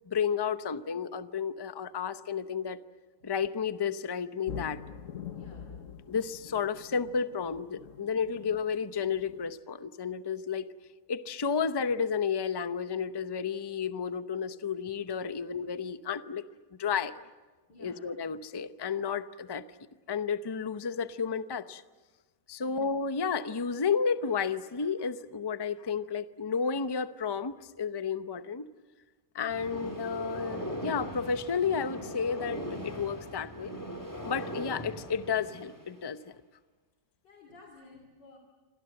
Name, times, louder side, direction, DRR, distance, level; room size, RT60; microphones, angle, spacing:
voice 1, 0.1-2.8 3.2-4.8 6.1-10.7 11.1-16.4 16.8-17.1 17.8-19.7 20.1-21.8 22.5-28.7 29.3-33.7 34.2-36.4, left 6 dB, 35° left, 11 dB, 0.4 m, -32 dB
sound 1, 4.5-9.5, left 7 dB, 50° left, 1.4 m, -45 dB
voice 2, 5.3-5.9 17.7-18.0 22.6-22.8 37.2-38.4, left 2 dB, 80° left, 3 dB, 3.5 m, -54 dB
sound 2, 29.5-35.9, equal, 10° left, 3.7 m, -39 dB
28.0 x 26.0 x 7.8 m, 1.3 s
omnidirectional pair, 1.8 m